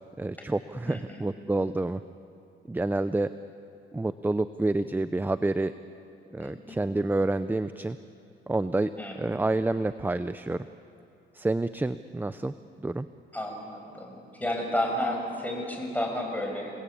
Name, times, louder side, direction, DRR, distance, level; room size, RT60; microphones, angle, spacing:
voice 1, 0.2-2.0 2.7-3.3 3.9-5.7 6.3-8.0 8.5-8.9 9.2-10.6 11.3-12.5 12.8-13.1, right 2 dB, 10° right, 13 dB, 0.6 m, -28 dB
voice 2, 0.8-1.2 6.4-6.8 9.0-9.3 13.3-16.7, left 1 dB, 10° left, 1 dB, 6.3 m, -32 dB
29.0 x 19.0 x 8.5 m, 2.6 s
cardioid pair, 90°, 20 cm